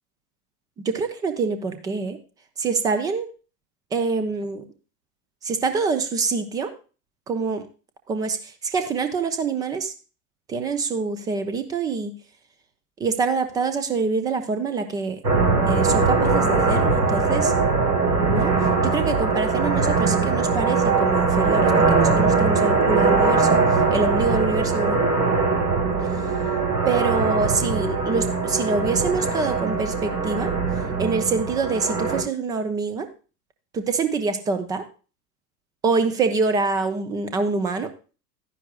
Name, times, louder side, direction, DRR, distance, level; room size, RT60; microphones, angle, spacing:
voice 1, 0.9-2.2 2.6-3.3 3.9-4.6 5.4-6.7 7.3-7.6 8.1-8.4 8.6-9.9 10.5-12.1 13.0-15.2 15.7-17.5 18.3-18.5 18.9-23.6 23.9-25.0 26.9-30.5 31.0-33.1 33.7-34.8 35.8-37.9, right 4 dB, 10° right, 10 dB, 0.3 m, -25 dB
sound 1, 15.2-32.2, right 4 dB, 80° right, 1.6 m, -21 dB
11.5 x 9.9 x 2.3 m, 0.34 s
figure-of-eight pair, 85°, 48 cm